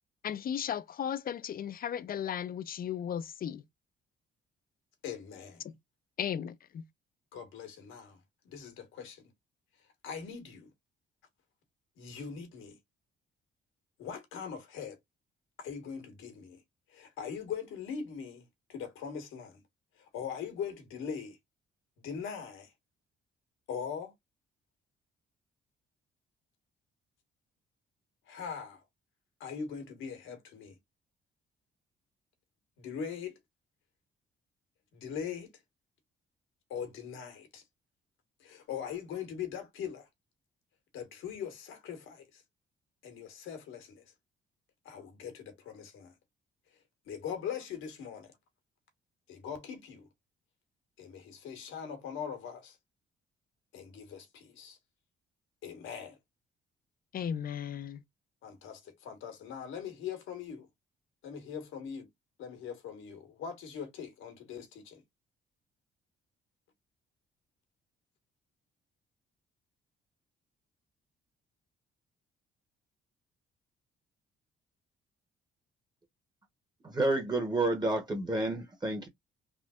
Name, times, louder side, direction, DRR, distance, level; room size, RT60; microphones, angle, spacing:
voice 1, 0.2-3.6 5.6-5.8 6.2-6.9 57.1-58.0, left 9 dB, 50° left, 0.5 m, -35 dB
voice 2, 5.0-5.6 7.3-8.2 8.4-9.3 10.0-10.7 12.0-12.8 14.0-15.0 15.6-16.6 16.9-19.6 20.1-21.4 22.0-22.7 23.7-24.1 28.3-28.8 29.4-30.7 32.8-33.3 34.9-35.5 36.7-37.6 38.4-40.1 40.9-42.4 43.0-44.0 44.8-46.1 47.1-48.3 49.3-50.1 51.0-52.8 53.7-54.8 55.6-56.2 58.4-60.7 61.2-62.1 62.4-65.0, left 7 dB, 90° left, 1.5 m, -41 dB
voice 3, 76.8-79.1, right 2 dB, 20° right, 1.1 m, -30 dB
3.5 x 2.6 x 2.4 m
cardioid pair, 90°, 20 cm